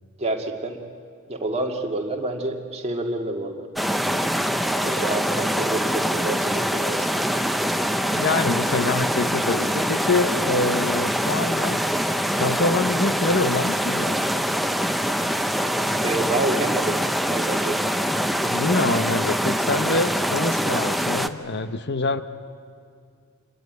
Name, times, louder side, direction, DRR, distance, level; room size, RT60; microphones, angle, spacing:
voice 1, 0.2-0.8 1.3-3.6 4.8-7.1 16.0-17.0 17.3-17.7, right 2 dB, 30° right, 2 dB, 2.0 m, -28 dB
sound 1, 3.8-21.3, equal, ahead, 0.6 m, -24 dB
voice 2, 8.1-11.8 12.3-14.2 18.4-22.2, left 3 dB, 50° left, 11 dB, 0.8 m, -25 dB
27.5 x 22.0 x 9.5 m, 2.2 s
head